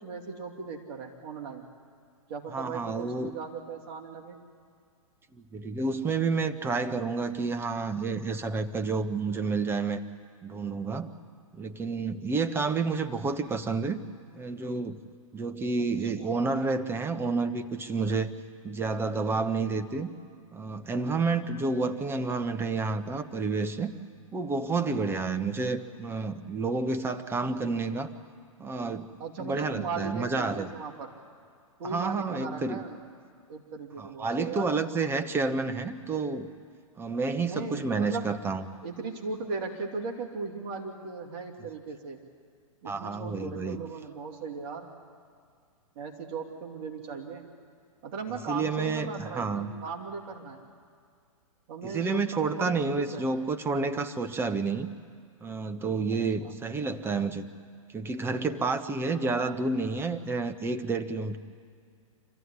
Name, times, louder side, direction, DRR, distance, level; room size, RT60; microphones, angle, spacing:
voice 1, 0.0-1.6 2.3-4.4 15.8-15.9 16.2-16.3 29.2-31.1 31.8-33.0 33.5-35.0 37.4-38.3 38.8-42.2 42.8-44.9 45.9-47.4 48.0-50.6 51.7-53.3 56.1-56.5, right 4 dB, 45° right, 2 dB, 2.7 m, -38 dB
voice 2, 2.5-3.4 5.5-10.0 10.4-11.1 11.6-14.0 14.3-15.0 15.3-18.3 18.6-20.1 20.5-23.9 24.3-28.1 28.6-29.1 29.4-30.7 31.9-32.8 34.0-36.5 37.0-38.6 42.8-43.8 48.5-49.7 51.8-54.9 55.4-57.5 57.9-61.4, right 4 dB, 15° right, 9 dB, 1.1 m, -30 dB
26.0 x 14.5 x 9.8 m, 2.2 s
hypercardioid pair, 120°, 18 cm